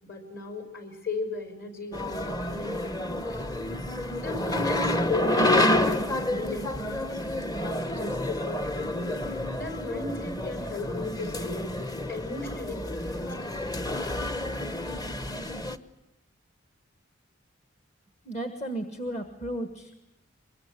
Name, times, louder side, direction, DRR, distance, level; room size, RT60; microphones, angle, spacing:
voice 1, 0.0-3.4 4.2-7.3 7.6-9.2 9.6-11.7 12.1-13.3, left 2 dB, 50° left, 6 dB, 5.4 m, -36 dB
sound 1, 1.9-15.8, left 1 dB, 20° left, 1.0 m, -29 dB
voice 2, 18.2-20.0, right 1 dB, 35° left, 8 dB, 1.6 m, -34 dB
23.5 x 22.5 x 9.8 m, 0.89 s
head